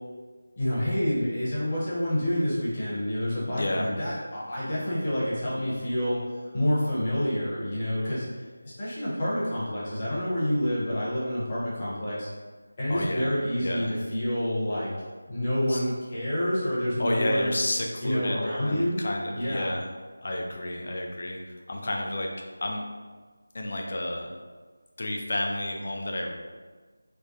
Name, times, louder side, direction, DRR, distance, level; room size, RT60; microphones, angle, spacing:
voice 1, 0.6-8.4 8.8-12.3 12.8-14.9 15.3-17.5 18.0-19.0 19.3-19.7, equal, 20° left, -9 dB, 0.9 m, -28 dB
voice 2, 3.5-3.9 12.9-13.3 13.6-13.9 15.7-15.8 17.0-19.8 20.2-21.4 21.7-22.3 22.6-22.8 23.5-24.3 25.0-26.3, left 1 dB, 40° left, 1 dB, 0.5 m, -30 dB
3.4 x 2.1 x 3.9 m, 1.4 s
figure-of-eight pair, 175°, 0 cm